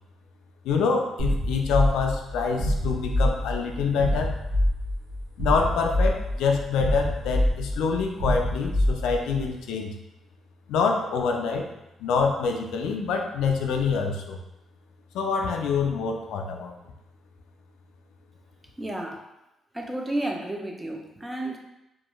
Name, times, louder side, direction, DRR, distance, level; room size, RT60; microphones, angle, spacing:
voice 1, 0.6-4.3 5.4-9.9 10.7-11.7 12.0-14.4 15.1-16.7, left 5 dB, 90° left, 2 dB, 0.3 m, -26 dB
sound 1, 1.2-9.4, left 1 dB, 65° right, 0.8 m, -26 dB
voice 2, 18.8-19.2 19.7-21.6, right 1 dB, 15° right, 1 dB, 0.4 m, -31 dB
2.4 x 2.2 x 2.9 m, 0.92 s
cardioid pair, 90°, 0 cm